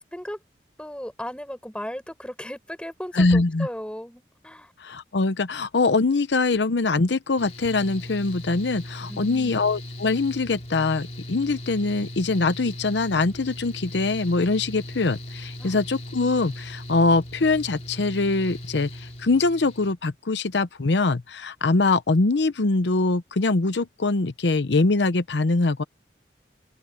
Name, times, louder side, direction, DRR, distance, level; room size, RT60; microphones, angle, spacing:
voice 1, 0.1-0.4 0.8-4.7 9.1-9.5 15.6-15.8, equal, 5° left, 5.3 m, -36 dB
voice 2, 3.1-3.7 4.8-25.8, left 3 dB, 80° left, 0.8 m, -23 dB
Mechanical fan, 7.4-19.9, left 1 dB, 40° left, 3.7 m, -38 dB
open air
head